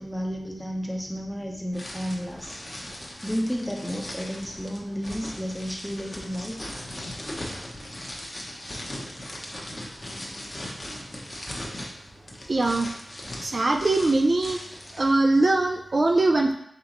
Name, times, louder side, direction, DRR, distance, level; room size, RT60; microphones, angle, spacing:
voice 1, 0.0-2.6 3.2-6.7, equal, 5° left, 0 dB, 0.8 m, -32 dB
sound 1, 1.7-15.1, left 1 dB, 30° left, 1.0 m, -39 dB
voice 2, 12.5-12.9 13.4-14.6 15.0-16.5, right 2 dB, 45° right, 3 dB, 0.4 m, -21 dB
4.3 x 4.0 x 3.0 m, 0.72 s
wide cardioid pair, 65°, 0 cm